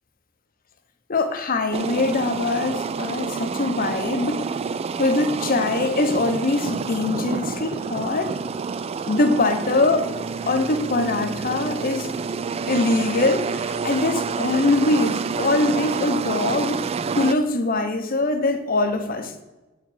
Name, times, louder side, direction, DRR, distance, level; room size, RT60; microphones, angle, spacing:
voice 1, 1.1-4.4 5.0-8.4 9.1-10.1 10.4-12.1 12.7-16.9 17.2-19.3, left 2 dB, 45° left, 8 dB, 0.8 m, -22 dB
sound 1, 1.7-17.4, right 5 dB, 30° right, 0.3 m, -28 dB
7.8 x 4.7 x 5.7 m, 1.1 s
head